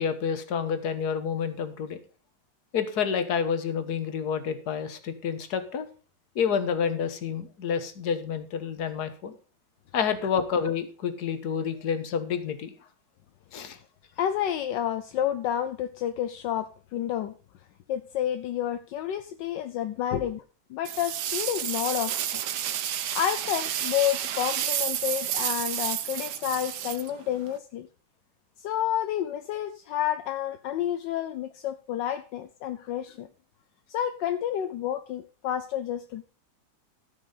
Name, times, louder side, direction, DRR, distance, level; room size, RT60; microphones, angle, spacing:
voice 1, 0.0-2.0 2.7-5.9 6.3-9.3 9.9-12.7 13.5-13.8 20.1-20.2, left 7 dB, 65° left, 10 dB, 1.7 m, -29 dB
voice 2, 14.2-17.3 17.9-20.4 20.7-22.4 23.1-27.9 28.6-33.3 33.9-36.3, left 10 dB, 80° left, 9 dB, 1.4 m, -30 dB
sound 1, 20.8-27.6, right 10 dB, 75° right, 1.4 m, -31 dB
13.0 x 6.2 x 5.4 m, 0.37 s
omnidirectional pair, 1.9 m